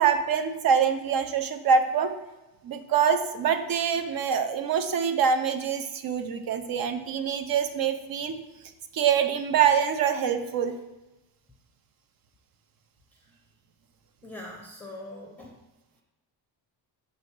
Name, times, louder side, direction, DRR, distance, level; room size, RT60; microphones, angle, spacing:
voice 1, 0.0-2.1 2.6-8.4 8.9-10.7, right 7 dB, 50° right, 9 dB, 0.6 m, -25 dB
voice 2, 14.2-15.5, left 1 dB, 5° left, -2 dB, 0.6 m, -42 dB
6.8 x 3.2 x 4.5 m, 1.0 s
cardioid pair, 140°, 46 cm